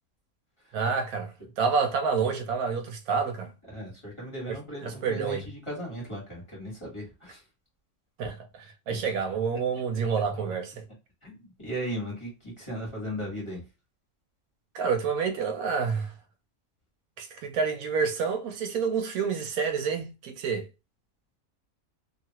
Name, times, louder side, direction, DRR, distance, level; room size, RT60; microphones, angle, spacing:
voice 1, 0.7-3.5 4.8-5.4 8.2-8.3 8.9-10.8 14.7-16.1 17.2-20.7, right 5 dB, 80° right, 1.1 m, -28 dB
voice 2, 3.7-7.4 8.9-9.0 11.2-13.6, equal, 20° left, 1.4 m, -37 dB
2.7 x 2.5 x 2.8 m
omnidirectional pair, 1.5 m